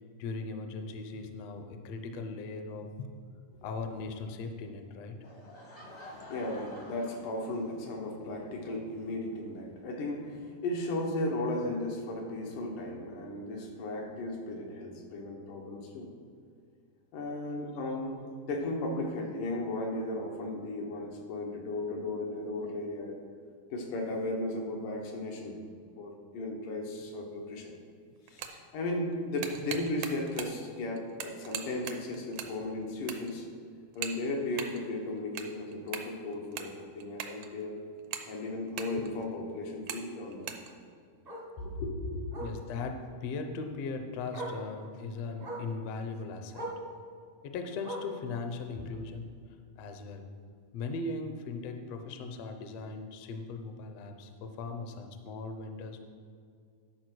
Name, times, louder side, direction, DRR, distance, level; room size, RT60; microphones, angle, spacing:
voice 1, 0.2-3.1 3.6-5.2 42.4-46.7 47.4-49.3 49.8-50.3 50.7-56.0, left 3 dB, 70° left, 6 dB, 1.6 m, -38 dB
Laughter / Crowd, 5.2-8.1, left 1 dB, 50° left, 0.7 m, -48 dB
voice 2, 6.3-16.1 17.1-23.2 23.7-25.6 26.0-27.7 28.3-33.5 34.0-37.8 38.3-40.5 41.6-42.4, left 1 dB, 90° left, 0 dB, 2.8 m, -35 dB
sound 1, 27.4-27.5 28.2-28.7 29.1-30.6 31.0-32.6 32.8-33.4 33.9-34.8 35.2-37.6 38.0-39.3 39.8-40.0 40.3-40.7, right 8 dB, 75° right, 1.8 m, -40 dB
Bark, 34.8-35.0 35.4-35.5 35.9-36.0 36.2-36.3 37.7-37.8 40.3-40.4 41.2-41.5 42.3-42.6 43.8-43.9 44.3-44.6 45.4-45.7 46.5-46.9 47.8-48.2 49.2-49.3, right 1 dB, 35° right, 0.6 m, -40 dB
11.0 x 4.5 x 6.2 m, 2.2 s
omnidirectional pair, 3.5 m